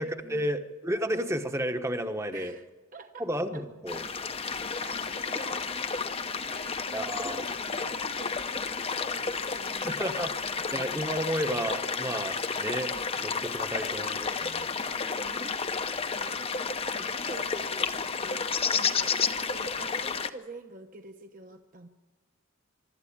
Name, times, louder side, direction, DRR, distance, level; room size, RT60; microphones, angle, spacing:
voice 1, 0.0-2.5 3.2-4.0 6.9-7.5 9.8-10.3 10.7-14.7, equal, 15° right, 8 dB, 1.1 m, -32 dB
voice 2, 2.3-2.6 2.9-3.3 3.5-3.6 3.9-4.0 4.8-5.8 6.3-10.3 14.9-15.8 16.1-19.2 19.4-21.9, right 2 dB, 40° right, 5 dB, 1.1 m, -48 dB
sound 1, 3.9-20.3, left 5 dB, 30° left, 0.8 m, -31 dB
24.0 x 12.5 x 8.8 m, 1.2 s
head